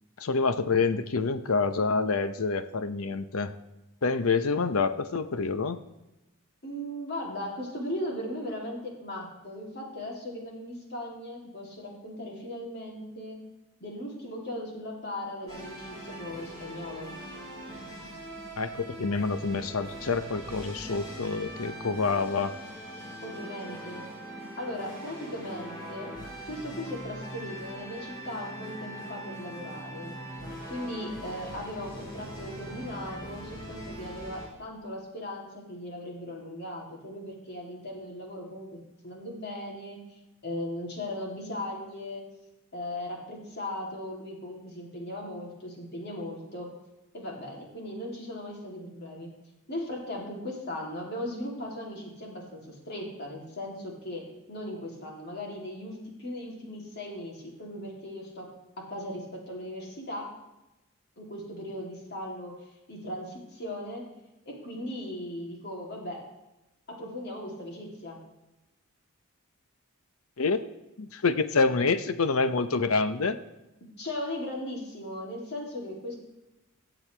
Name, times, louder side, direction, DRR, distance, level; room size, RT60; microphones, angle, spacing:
voice 1, 0.2-3.5 4.0-5.8 18.6-22.5 70.4-70.6 71.0-73.4, left 4 dB, 80° left, 11 dB, 0.8 m, -27 dB
voice 2, 6.6-13.4 13.8-17.1 23.2-24.0 24.6-26.1 26.5-30.2 30.7-40.0 40.4-42.2 42.7-46.7 47.1-49.3 49.7-58.5 58.8-60.3 61.2-62.5 62.9-64.1 64.5-66.3 66.9-68.2 74.0-76.2, left 1 dB, 50° left, -2 dB, 2.9 m, -38 dB
sound 1, 15.5-34.5, right 1 dB, 20° left, 4.0 m, -42 dB
22.5 x 7.8 x 3.4 m, 0.98 s
head